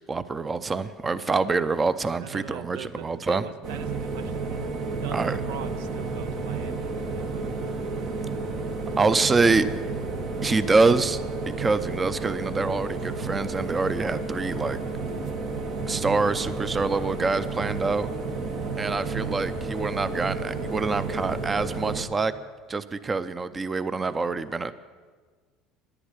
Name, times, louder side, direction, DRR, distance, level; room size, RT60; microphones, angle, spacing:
voice 1, 0.1-3.4 5.1-5.4 9.0-9.7 10.4-14.8 15.9-18.1 18.8-22.3 22.7-24.7, right 3 dB, 25° right, 14 dB, 0.6 m, -25 dB
voice 2, 1.0-1.4 2.2-4.6 5.0-7.4, right 8 dB, 85° right, 12 dB, 0.6 m, -41 dB
sound 1, 3.6-22.0, right 3 dB, 60° right, 1.5 m, -31 dB
10.5 x 9.9 x 8.3 m, 1.5 s
supercardioid pair, 90°, 0 cm